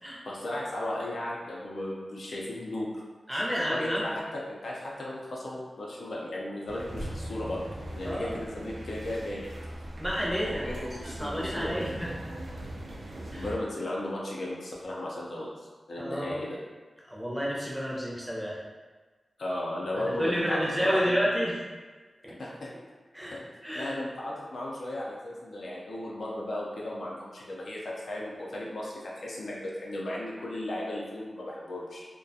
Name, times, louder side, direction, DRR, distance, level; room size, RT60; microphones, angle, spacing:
voice 1, 0.2-3.0 3.3-3.4 3.7-7.6 8.0-9.5 10.4-11.8 13.4-15.5 15.9-16.6 19.4-21.2 22.4-22.7 23.3-23.5 23.7-32.0, left 1 dB, 75° left, -4 dB, 0.5 m, -35 dB
voice 2, 3.3-4.1 8.0-8.4 9.9-10.7 11.0-12.1 13.3-13.5 16.0-16.4 17.1-18.6 19.9-21.6 22.2-22.4 23.1-23.4 23.6-24.0, equal, 5° right, -5 dB, 0.6 m, -30 dB
sound 1, 6.7-13.5, right 1 dB, 75° right, 0.4 m, -39 dB
2.3 x 2.1 x 2.6 m, 1.3 s
wide cardioid pair, 75°, 0 cm